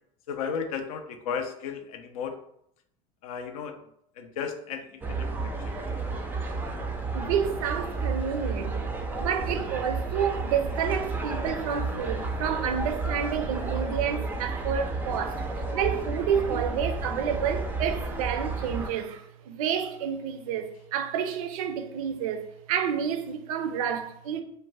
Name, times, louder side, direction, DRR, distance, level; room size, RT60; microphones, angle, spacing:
voice 1, 0.3-2.4 3.2-3.8 4.2-5.7, left 6 dB, 80° left, 0.4 m, -34 dB
sound 1, 5.0-18.9, right 3 dB, 10° right, 0.3 m, -32 dB
voice 2, 7.1-8.8 9.2-24.4, right 8 dB, 85° right, 0.4 m, -29 dB
2.5 x 2.1 x 3.1 m
supercardioid pair, 105°, 18 cm